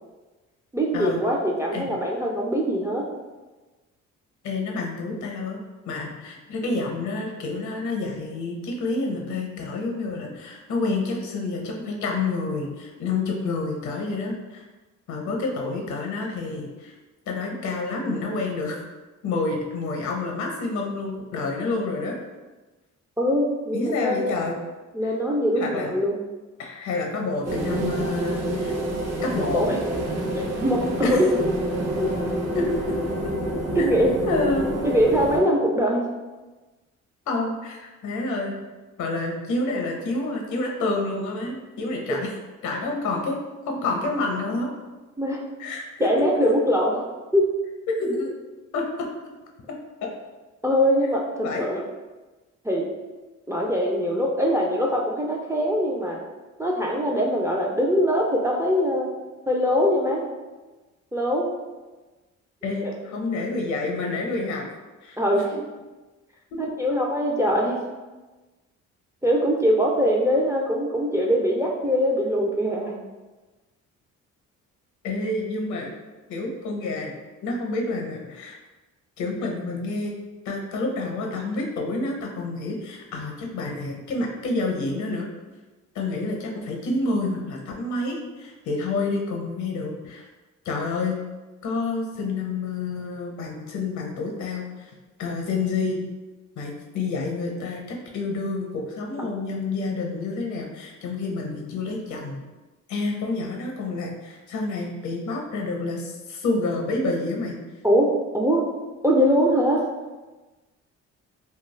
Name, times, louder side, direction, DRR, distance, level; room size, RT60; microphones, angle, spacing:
voice 1, 0.7-3.1 23.2-24.2 24.9-26.2 29.4-29.8 30.3-31.3 32.0-32.2 33.8-34.1 34.8-36.1 45.2-45.4 46.0-47.0 47.3-47.5 50.6-51.8 52.6-52.9 53.5-56.2 56.6-59.1 59.5-60.2 61.1-61.5 62.8-63.0 65.2-65.5 66.6-67.8 69.2-73.0 99.2-99.3 107.8-108.1 108.3-108.6 109.0-109.8, equal, 10° right, -2 dB, 0.3 m, -22 dB
voice 2, 4.4-5.6 5.9-14.6 15.1-16.9 17.3-18.8 19.2-22.2 23.7-24.6 25.6-25.9 26.6-28.7 29.2-29.6 31.0-31.4 32.5-32.6 34.3-34.7 37.3-38.6 39.0-42.2 42.6-43.4 43.7-44.7 45.6-46.1 46.4-46.5 47.9-48.3 48.7-49.1 50.0-50.1 51.4-51.7 62.6-64.6 65.0-65.2 65.5-65.6 66.5-66.6 75.0-75.9 76.3-77.1 77.4-78.6 79.2-80.1 80.5-85.3 85.9-90.3 90.6-91.2 91.6-94.9 95.2-96.1 96.6-102.4 102.9-107.6, left 3 dB, 70° left, 0 dB, 0.7 m, -28 dB
sound 1, 27.5-35.4, right 1 dB, 60° right, 0.6 m, -28 dB
2.3 x 2.3 x 3.2 m, 1.2 s
cardioid pair, 90°, 30 cm